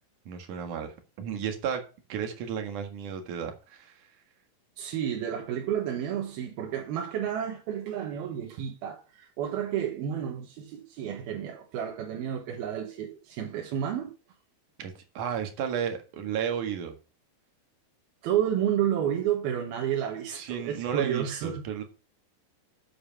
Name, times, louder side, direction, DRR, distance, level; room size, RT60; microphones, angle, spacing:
voice 1, 0.3-1.8 2.1-4.1 14.8-17.0 20.3-21.8, right 8 dB, 60° right, 3.0 m, -33 dB
voice 2, 4.8-14.1 18.2-21.6, right 9 dB, 90° right, 3.3 m, -31 dB
8.3 x 7.7 x 5.8 m
omnidirectional pair, 4.2 m